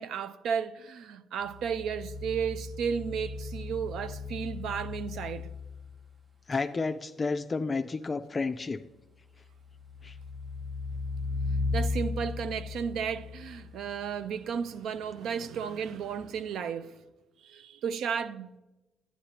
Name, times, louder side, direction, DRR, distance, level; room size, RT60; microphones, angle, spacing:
voice 1, 0.0-5.5 11.7-17.0 17.4-18.6, right 7 dB, 80° right, 0.4 m, -33 dB
sound 1, 1.4-6.0 9.4-14.0 16.1-16.2, left 3 dB, 35° right, 0.7 m, -36 dB
voice 2, 6.5-8.8 10.0-10.2, left 4 dB, 30° left, 0.3 m, -31 dB
10.0 x 10.0 x 2.9 m
cardioid pair, 90°, 0 cm